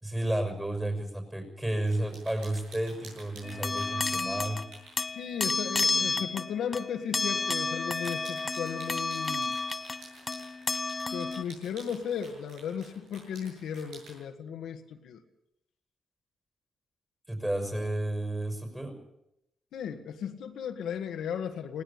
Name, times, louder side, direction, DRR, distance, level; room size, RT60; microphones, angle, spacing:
voice 1, 0.0-4.7 5.8-6.2 17.3-19.0, right 1 dB, 15° right, 4 dB, 5.7 m, -32 dB
sound 1, 1.9-5.1 5.9-6.1 6.5-6.6 7.8-14.2, right 3 dB, 85° right, 7.8 m, -50 dB
sound 2, 3.4-4.7 5.0-11.4, left 3 dB, 30° left, 0.8 m, -31 dB
voice 2, 5.1-9.6 11.1-15.2 19.7-21.8, left 8 dB, 80° left, 6 dB, 1.9 m, -35 dB
20.0 x 17.5 x 8.5 m, 0.81 s
cardioid pair, 65°, 0 cm